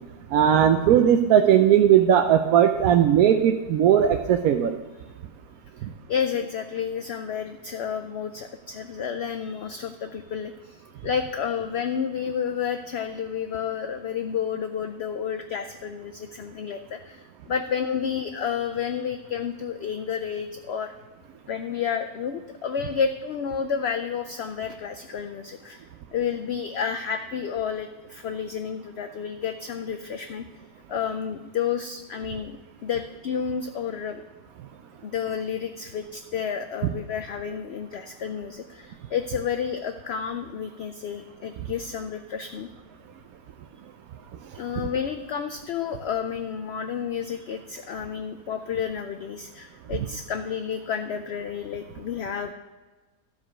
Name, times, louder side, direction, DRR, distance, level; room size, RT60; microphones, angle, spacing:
voice 1, 0.3-4.8, right 9 dB, 75° right, 5 dB, 1.0 m, -18 dB
voice 2, 6.1-20.9 21.5-25.8 26.1-30.4 30.9-34.2 35.0-42.7 44.6-52.5, left 7 dB, 70° left, 7 dB, 0.6 m, -30 dB
12.5 x 4.9 x 5.9 m, 1.2 s
omnidirectional pair, 1.6 m